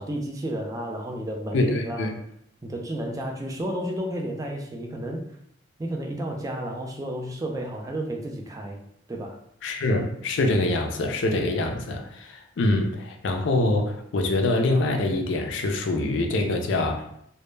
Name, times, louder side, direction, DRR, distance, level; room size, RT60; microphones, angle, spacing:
voice 1, 0.0-2.1 2.6-5.3 5.8-8.8 9.1-9.4, right 1 dB, 20° right, 1 dB, 0.3 m, -32 dB
voice 2, 1.5-2.1 9.6-17.1, left 2 dB, 70° left, 3 dB, 0.4 m, -25 dB
2.1 x 2.0 x 3.1 m, 0.72 s
head